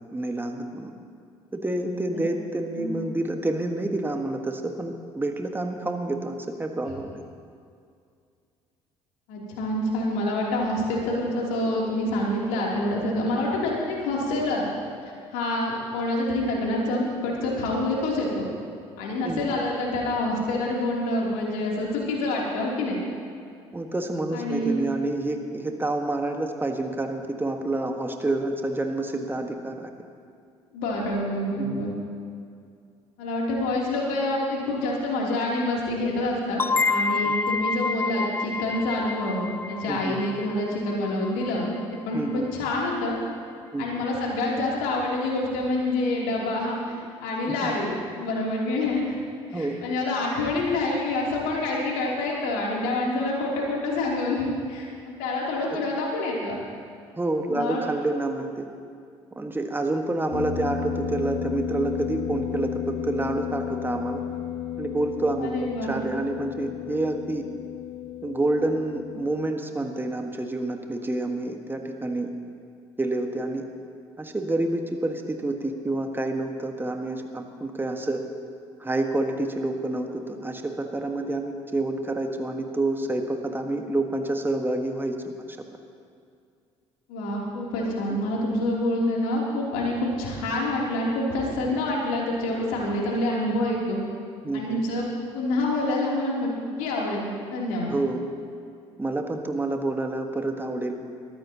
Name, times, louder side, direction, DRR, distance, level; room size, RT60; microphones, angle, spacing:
voice 1, 0.1-0.9 1.5-7.2 19.2-19.5 23.7-29.9 31.6-31.9 37.2-37.3 39.9-40.2 42.1-42.5 43.7-44.0 47.5-47.7 49.5-50.0 55.7-55.8 57.2-58.7 59.3-64.2 64.8-65.5 65.8-67.4 68.2-72.3 73.0-73.6 74.2-78.2 78.8-85.2 94.4-94.8 97.9-98.2 99.0-101.0, right 2 dB, 15° right, 4 dB, 1.6 m, -28 dB
voice 2, 9.3-14.7 15.3-18.5 19.0-23.0 24.3-24.8 30.7-31.9 33.2-43.2 43.8-46.9 47.2-49.1 49.5-56.6 57.5-57.8 65.4-66.0 87.1-94.0 94.5-96.5 96.8-98.0, left 1 dB, 65° left, -3 dB, 3.3 m, -27 dB
sound 1, 36.6-42.0, left 4 dB, 15° left, 0.4 m, -28 dB
sound 2, 60.3-69.4, left 9 dB, 50° left, 1.6 m, -33 dB
21.5 x 15.0 x 3.0 m, 2.3 s
figure-of-eight pair, 50°, 15 cm